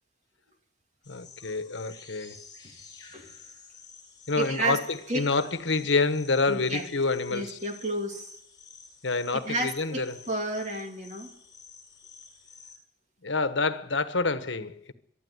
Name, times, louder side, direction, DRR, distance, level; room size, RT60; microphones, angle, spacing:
sound 1, 1.0-12.8, left 5 dB, 20° left, 5.2 m, -51 dB
voice 1, 1.1-2.4 4.3-7.6 9.0-10.2 13.2-14.9, left 3 dB, 85° left, 1.3 m, -28 dB
voice 2, 4.4-4.8 5.1-5.3 6.5-6.9 7.3-8.4 9.4-11.3, right 2 dB, 40° right, 2.9 m, -31 dB
23.5 x 12.0 x 9.6 m
head